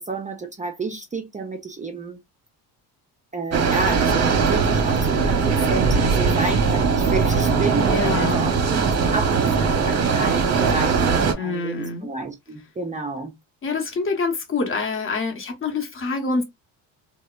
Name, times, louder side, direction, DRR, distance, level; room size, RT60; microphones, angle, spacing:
voice 1, 0.1-2.2 3.3-8.8 9.1-13.3, right 3 dB, 20° right, 0.5 m, -30 dB
sound 1, 3.5-11.3, right 5 dB, 40° right, 0.8 m, -20 dB
voice 2, 7.9-8.5 11.4-12.1 13.6-16.4, left 4 dB, 30° left, 1.0 m, -26 dB
2.7 x 2.0 x 2.3 m
cardioid pair, 95°, 42 cm